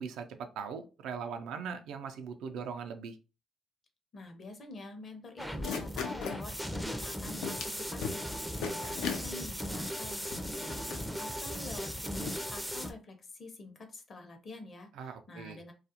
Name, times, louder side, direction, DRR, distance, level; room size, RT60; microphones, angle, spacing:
voice 1, 0.0-3.2 14.9-15.6, right 6 dB, 85° right, 6 dB, 0.4 m, -40 dB
voice 2, 4.1-15.7, left 2 dB, 45° left, 5 dB, 0.6 m, -48 dB
sound 1, 5.4-6.4 7.0-7.1 7.4-8.3 8.6-9.2 9.9-10.0 10.2-11.0 11.8-11.9 12.2-12.4, left 6 dB, 90° left, 0.4 m, -37 dB
sound 2, 5.4-12.9, equal, ahead, 0.4 m, -38 dB
2.3 x 2.0 x 2.7 m, 0.31 s
cardioid pair, 90°, 0 cm